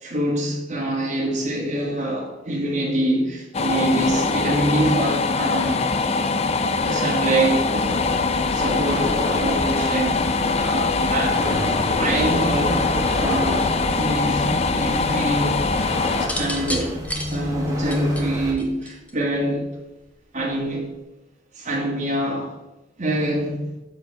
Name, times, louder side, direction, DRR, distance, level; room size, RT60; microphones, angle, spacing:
voice 1, 0.0-5.8 6.8-8.0 8.5-10.3 10.5-11.4 11.9-12.9 13.2-13.7 13.9-15.6 16.2-19.7 20.3-20.9 21.5-22.6 23.0-23.7, right 1 dB, 40° right, -3 dB, 1.6 m, -25 dB
sound 1, 3.5-16.3, left 4 dB, 35° left, 0.5 m, -23 dB
sound 2, 7.8-18.5, equal, 20° right, 1.3 m, -29 dB
sound 3, 16.2-19.3 20.4-20.8, left 1 dB, 10° left, 0.9 m, -31 dB
7.0 x 4.6 x 5.8 m, 0.99 s
head